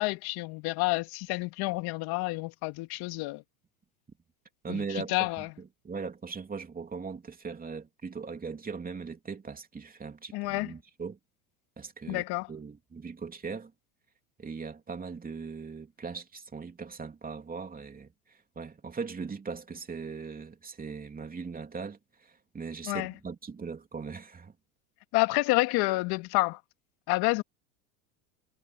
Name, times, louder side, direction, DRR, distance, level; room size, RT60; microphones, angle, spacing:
voice 1, 0.0-3.4 4.7-4.8 5.1-5.5 10.3-10.7 12.1-12.5 22.9-23.1 25.1-26.6 27.1-27.4, left 22 dB, 55° left, 2.4 m, -29 dB
voice 2, 4.6-11.2 11.8-12.2 12.5-13.7 14.4-24.5, right 5 dB, 20° right, 3.3 m, -39 dB
hypercardioid pair, 100°, 45 cm